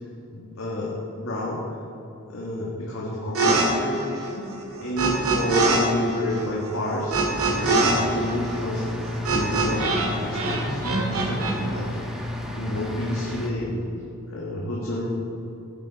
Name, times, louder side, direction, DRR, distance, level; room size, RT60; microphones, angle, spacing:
voice 1, 0.3-1.6 2.3-4.0 4.3-4.4 4.8-8.8 9.3-13.9 14.3-15.1, left 1 dB, 70° left, -4 dB, 1.7 m, -30 dB
sound 1, 3.3-3.7 3.9-5.8 6.1-10.1 10.3-11.5, right 3 dB, 85° right, 2.1 m, -23 dB
sound 2, 7.3-13.5, left 1 dB, ahead, 1.1 m, -32 dB
14.5 x 9.6 x 4.2 m, 2.7 s
head